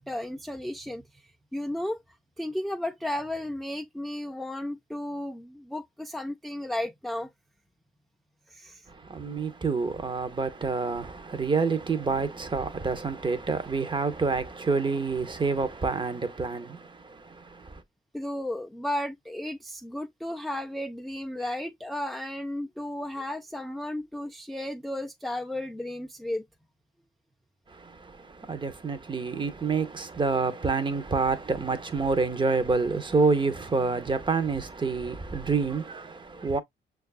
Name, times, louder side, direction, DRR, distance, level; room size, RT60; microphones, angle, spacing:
voice 1, 0.0-2.0 2.4-7.3 8.5-8.9 9.2-9.4 18.1-26.5, left 1 dB, ahead, 0.3 m, -34 dB
voice 2, 8.9-17.8 27.7-36.6, right 4 dB, 25° right, 0.7 m, -28 dB
6.2 x 2.4 x 2.3 m
cardioid pair, 90°, 20 cm